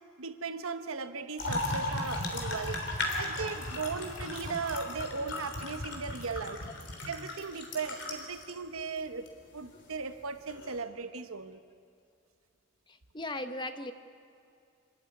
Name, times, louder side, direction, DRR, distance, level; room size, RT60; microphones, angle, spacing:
voice 1, 0.2-2.9 3.2-6.6 7.1-9.3 9.5-11.6, right 4 dB, 85° right, 10 dB, 1.2 m, -37 dB
sound 1, 1.4-8.5 9.3-9.4 10.5-10.8, left 1 dB, 55° left, 3.5 m, -36 dB
voice 2, 12.9-13.9, left 1 dB, 20° left, 9 dB, 0.9 m, -37 dB
25.5 x 13.5 x 9.6 m, 2.5 s
head